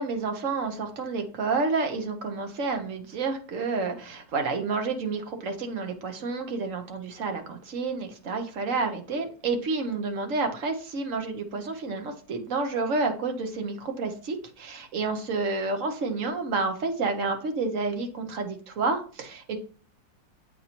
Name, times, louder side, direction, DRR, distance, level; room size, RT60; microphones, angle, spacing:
voice 1, 0.0-19.6, right 3 dB, 50° right, 5 dB, 1.1 m, -29 dB
8.1 x 4.2 x 2.9 m, 0.40 s
omnidirectional pair, 2.0 m